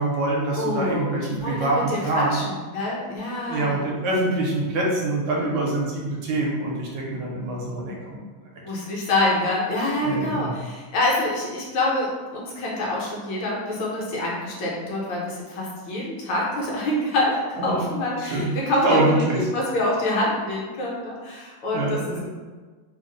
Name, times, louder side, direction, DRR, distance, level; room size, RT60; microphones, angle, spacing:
voice 1, 0.0-2.4 3.5-8.2 10.0-10.6 17.6-18.6 18.8-19.5 21.7-22.2, right 2 dB, 75° right, -3 dB, 1.3 m, -25 dB
voice 2, 0.6-3.8 5.4-5.7 8.6-19.3 19.5-22.2, left 1 dB, 70° left, -4 dB, 1.5 m, -26 dB
3.5 x 2.0 x 3.7 m, 1.4 s
omnidirectional pair, 2.2 m